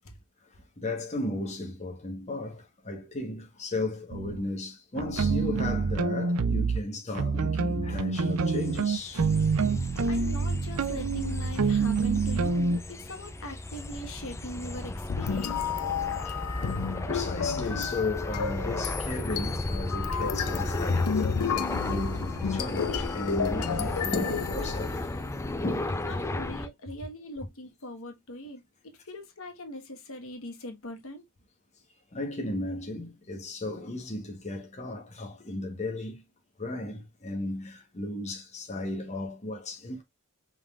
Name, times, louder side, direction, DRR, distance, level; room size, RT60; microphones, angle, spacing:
voice 1, 0.8-9.3 9.8-9.9 10.1-10.2 14.7-14.8 17.1-25.1 25.6-26.2 32.1-36.2 36.6-40.0, left 2 dB, 30° left, 1.1 m, -35 dB
sound 1, 4.1-4.4 5.0-6.8 7.1-12.8, right 4 dB, 70° right, 0.5 m, -27 dB
sound 2, 8.3-26.7, left 2 dB, 15° left, 0.5 m, -35 dB
voice 2, 10.0-15.6 26.1-31.2, left 1 dB, 65° left, 1.3 m, -41 dB
sound 3, 15.1-25.4, left 6 dB, 90° left, 0.6 m, -32 dB
5.3 x 3.8 x 2.3 m
head